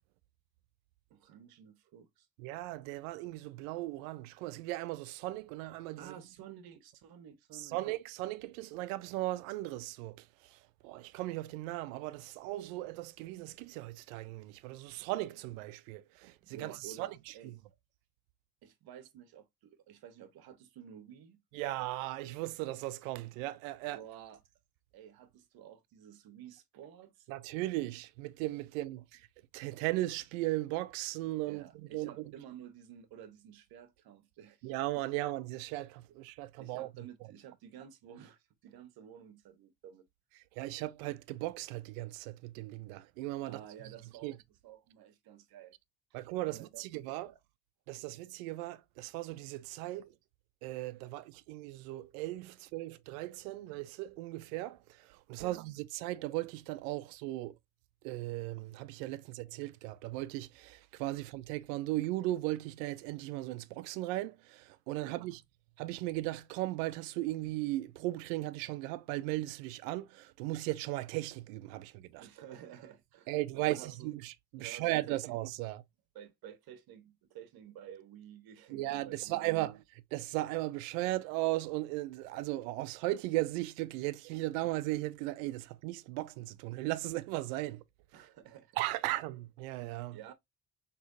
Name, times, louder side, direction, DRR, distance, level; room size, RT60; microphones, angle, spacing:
voice 1, 1.1-2.3 6.0-7.8 16.4-17.6 18.6-21.4 23.8-24.4 24.9-27.3 31.5-34.7 36.6-40.0 43.4-45.8 46.5-46.8 47.2-47.4 49.9-50.0 55.4-55.6 65.0-65.2 72.1-74.1 74.6-75.3 76.1-79.6 88.1-88.8 90.1-90.3, right 9 dB, 65° right, 1.0 m, -52 dB
voice 2, 2.4-6.1 7.5-17.6 21.5-24.0 27.3-29.3 29.5-32.3 34.6-36.9 40.6-43.6 44.2-44.4 46.1-47.3 47.9-50.1 50.6-57.6 58.0-65.4 65.8-72.3 73.3-75.8 78.7-87.8 88.8-90.2, right 17 dB, 90° right, 0.5 m, -37 dB
6.1 x 3.1 x 2.5 m
supercardioid pair, 65°, 39 cm